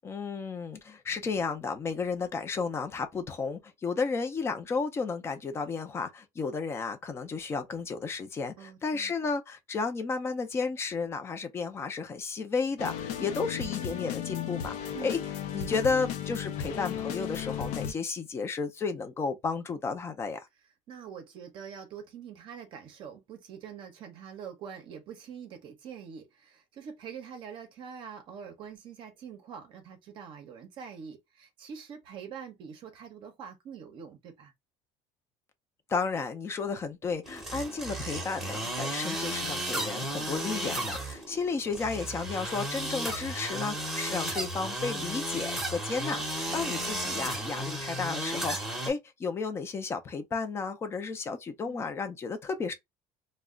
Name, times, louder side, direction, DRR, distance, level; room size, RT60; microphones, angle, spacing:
voice 1, 0.0-15.2 15.5-20.5 35.9-52.7, left 4 dB, 20° left, 0.5 m, -33 dB
voice 2, 8.6-9.1 14.9-15.1 20.9-34.5 46.5-47.1 51.6-51.9, right 7 dB, 45° right, 0.6 m, -45 dB
sound 1, 12.8-17.9, left 9 dB, 80° left, 0.6 m, -35 dB
sound 2, 37.2-48.9, right 1 dB, ahead, 0.8 m, -34 dB
2.3 x 2.1 x 3.5 m
cardioid pair, 160°, 12 cm